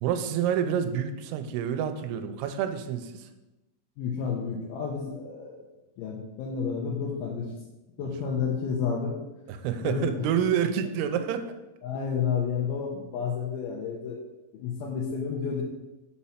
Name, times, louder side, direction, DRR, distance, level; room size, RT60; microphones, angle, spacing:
voice 1, 0.0-3.3 8.0-8.1 9.5-11.6, right 8 dB, 90° right, 9 dB, 2.6 m, -28 dB
voice 2, 4.0-5.6 6.0-7.5 8.0-9.2 9.8-10.2 11.8-14.2 14.5-15.6, left 6 dB, 80° left, -2 dB, 2.5 m, -30 dB
6.0 x 4.2 x 5.6 m, 1.0 s
omnidirectional pair, 4.5 m